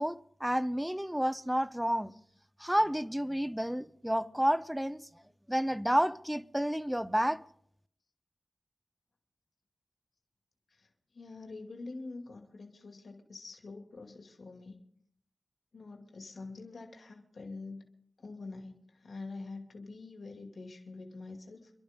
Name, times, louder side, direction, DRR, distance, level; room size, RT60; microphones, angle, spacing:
voice 1, 0.0-2.1 2.6-5.0 5.5-7.4, equal, 5° right, 0.7 m, -30 dB
voice 2, 11.1-14.8 15.7-17.9 18.2-21.7, left 3 dB, 75° left, 2.3 m, -45 dB
28.0 x 11.5 x 3.7 m
wide cardioid pair, 60°, 0 cm